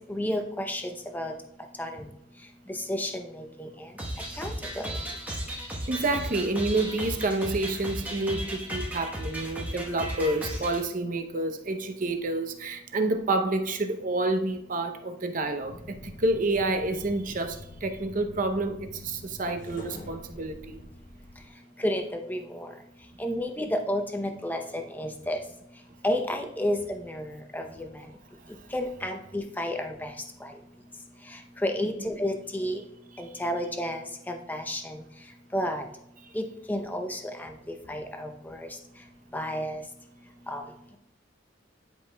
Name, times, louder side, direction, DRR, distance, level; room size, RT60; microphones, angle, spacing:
voice 1, 0.1-1.3 1.8-2.0 2.7-3.7 4.4-4.9 21.8-22.7 23.2-25.4 26.0-27.9 28.7-30.1 30.4-30.5 31.6-32.8 33.2-35.0 35.5-35.8 36.3-37.5 37.9-38.7 39.3-39.8 40.5-40.6, left 1 dB, 10° left, 4 dB, 0.6 m, -31 dB
sound 1, 4.0-10.8, right 1 dB, 10° right, 1.1 m, -35 dB
voice 2, 5.9-20.8 32.0-32.1, right 2 dB, 45° right, 6 dB, 0.7 m, -29 dB
sound 2, 15.6-21.5, left 2 dB, 45° left, 0.7 m, -45 dB
10.5 x 5.2 x 2.2 m, 0.78 s
head